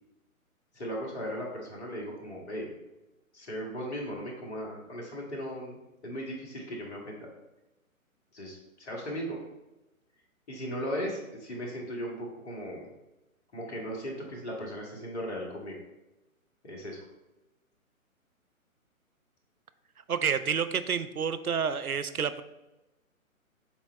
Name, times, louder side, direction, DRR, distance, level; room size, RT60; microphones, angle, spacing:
voice 1, 0.7-2.7 3.3-5.8 6.0-7.3 8.3-9.4 10.5-12.9 13.5-15.8 16.6-17.0, equal, 50° left, -1 dB, 1.8 m, -37 dB
voice 2, 20.1-22.4, right 6 dB, 90° right, 12 dB, 0.6 m, -29 dB
7.2 x 3.0 x 4.3 m, 1.0 s
figure-of-eight pair, 130°, 42 cm